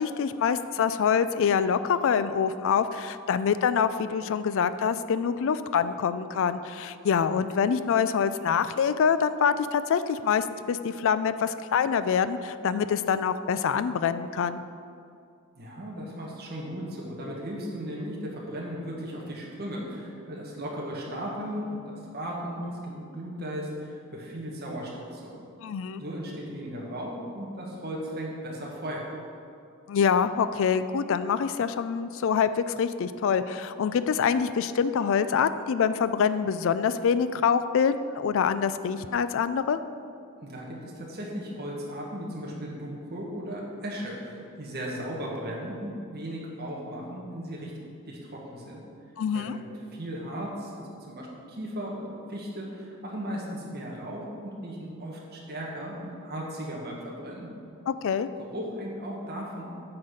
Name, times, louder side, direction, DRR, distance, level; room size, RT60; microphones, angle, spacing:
voice 1, 0.0-14.6 25.6-26.0 29.9-39.8 49.2-49.6 57.9-58.3, left 7 dB, 60° left, 13 dB, 0.3 m, -25 dB
voice 2, 15.5-25.4 26.0-29.1 40.4-47.7 48.1-48.8 49.3-57.5 58.4-59.7, equal, 45° right, -3 dB, 1.5 m, -36 dB
8.5 x 4.1 x 6.4 m, 2.5 s
head